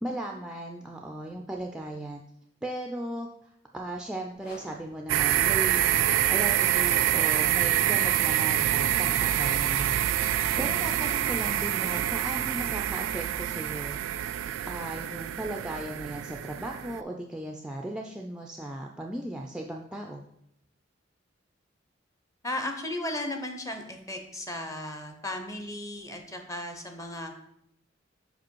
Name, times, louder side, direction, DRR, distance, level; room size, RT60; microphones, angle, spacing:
voice 1, 0.0-2.2 2.6-3.3 3.7-9.9 10.6-14.0 14.7-20.3, right 1 dB, 5° right, 1 dB, 0.3 m, -36 dB
sound 1, 4.3-14.2, left 1 dB, 55° left, 1.0 m, -51 dB
sound 2, 5.1-17.0, right 12 dB, 85° right, 0.3 m, -26 dB
voice 2, 22.4-27.3, left 1 dB, 15° left, 5 dB, 0.7 m, -35 dB
5.4 x 5.0 x 4.5 m, 0.76 s
head